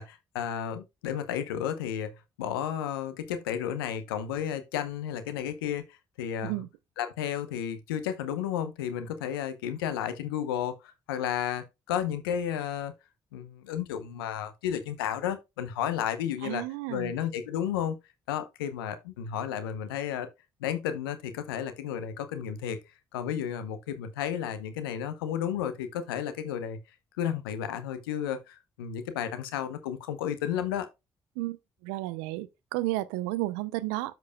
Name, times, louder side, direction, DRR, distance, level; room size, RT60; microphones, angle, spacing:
voice 1, 0.0-6.6 7.0-12.9 13.3-16.6 16.9-18.0 18.3-20.3 20.6-22.8 23.1-26.8 27.2-30.9, left 9 dB, 90° left, 0.8 m, -32 dB
voice 2, 16.4-17.2 31.4-31.6 31.8-34.2, right 18 dB, 85° right, 0.5 m, -32 dB
13.0 x 4.6 x 2.2 m
hypercardioid pair, 40°, 12 cm